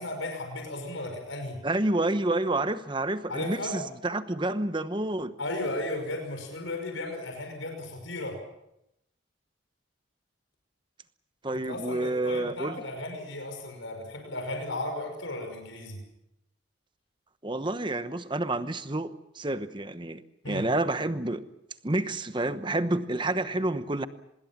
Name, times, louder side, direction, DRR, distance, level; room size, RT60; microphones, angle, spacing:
voice 1, 0.0-1.6 3.3-3.8 5.4-8.4 11.5-16.0 20.4-20.7, left 2 dB, 75° left, 4 dB, 5.8 m, -35 dB
voice 2, 1.6-5.4 11.4-12.8 17.4-21.5 21.8-24.1, right 2 dB, 25° right, 11 dB, 1.0 m, -29 dB
25.0 x 21.5 x 7.4 m, 0.83 s
head